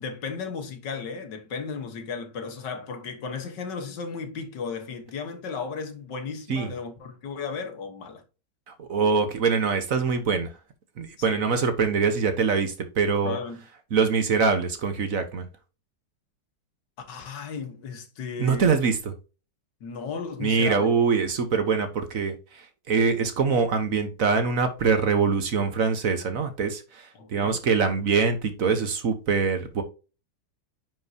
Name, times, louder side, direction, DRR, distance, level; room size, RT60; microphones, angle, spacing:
voice 1, 0.0-8.2 11.2-11.4 13.2-13.6 17.0-18.7 19.8-20.9 27.2-27.6, left 5 dB, 80° left, 2.0 m, -35 dB
voice 2, 8.7-10.5 11.0-13.4 13.9-15.5 18.4-19.1 20.4-29.8, right 5 dB, 55° right, 1.4 m, -24 dB
9.3 x 5.4 x 2.8 m
omnidirectional pair, 1.9 m